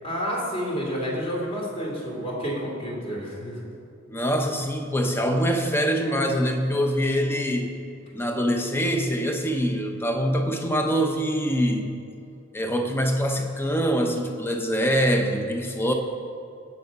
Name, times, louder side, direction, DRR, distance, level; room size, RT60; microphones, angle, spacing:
voice 1, 0.0-3.6, equal, 30° left, -2 dB, 2.7 m, -29 dB
voice 2, 4.1-7.7 8.1-11.9 12.5-15.9, equal, 10° left, 4 dB, 0.9 m, -24 dB
17.0 x 7.0 x 5.3 m, 2.5 s
head